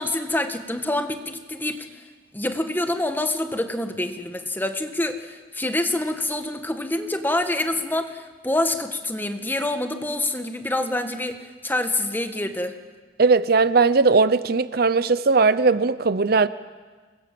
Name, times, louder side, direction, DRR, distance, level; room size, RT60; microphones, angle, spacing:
voice 1, 0.0-1.9 2.3-11.4 11.6-12.7, left 1 dB, 10° left, 7 dB, 1.7 m, -26 dB
voice 2, 13.2-16.5, right 4 dB, 60° right, 15 dB, 0.7 m, -18 dB
27.0 x 22.0 x 7.8 m, 1.4 s
head